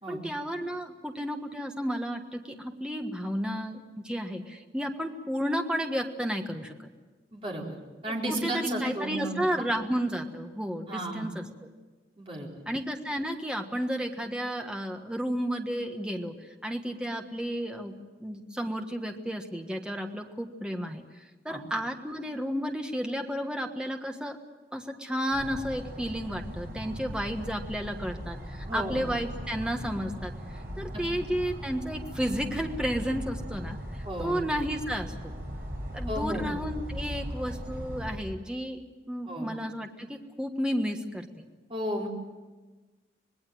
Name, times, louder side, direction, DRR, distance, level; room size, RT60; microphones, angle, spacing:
voice 1, 0.1-6.9 8.3-11.4 12.7-16.3 16.6-17.9 18.2-21.0 21.4-24.4 24.7-30.3 30.8-33.8 34.2-35.1 35.9-38.8 39.1-41.4, equal, 5° right, 4 dB, 1.4 m, -32 dB
voice 2, 7.3-7.8 8.0-9.7 10.9-11.3 12.2-12.5 21.5-21.6 28.7-29.0 30.9-31.0 34.0-34.4 36.1-36.4 39.3-39.5 41.7-42.1, right 1 dB, 30° right, -2 dB, 4.3 m, -33 dB
sound 1, 25.3-38.2, equal, 60° right, 5.5 m, -38 dB
26.0 x 19.5 x 7.8 m, 1.3 s
head